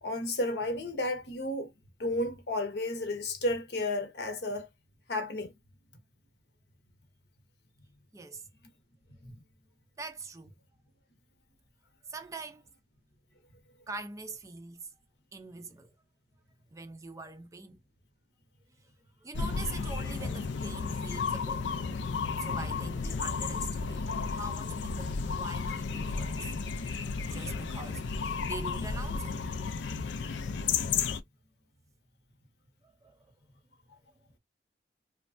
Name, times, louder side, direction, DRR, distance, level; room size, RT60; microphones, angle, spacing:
voice 1, 0.0-1.7 2.0-4.7 5.1-5.5 9.2-9.3, left 1 dB, 70° left, 0.8 m, -32 dB
voice 2, 8.1-8.5 10.0-10.5 12.1-12.6 13.9-14.9 15.3-15.9 16.7-17.8 18.8-18.9 19.2-21.6 22.4-26.5 27.3-29.4 33.0-33.3, right 3 dB, 20° right, 0.3 m, -43 dB
sound 1, 19.3-31.2, left 5 dB, 85° left, 0.4 m, -33 dB
3.1 x 2.2 x 2.4 m
head